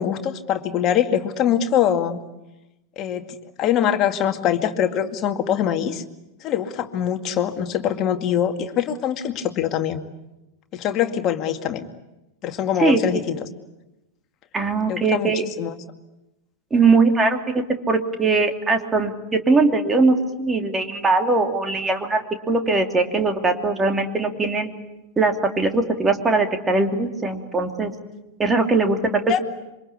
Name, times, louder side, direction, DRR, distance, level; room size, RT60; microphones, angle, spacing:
voice 1, 0.0-2.2 3.0-3.3 3.6-6.0 6.4-10.0 10.7-11.9 12.4-13.4 14.9-15.3 15.6-15.7 29.3-29.4, left 9 dB, 35° left, 6 dB, 2.2 m, -23 dB
voice 2, 14.5-15.4 16.7-24.7 25.2-27.9 28.4-29.0, right 3 dB, 15° right, 5 dB, 2.8 m, -20 dB
27.0 x 25.0 x 8.4 m, 0.97 s
figure-of-eight pair, 90°, 0 cm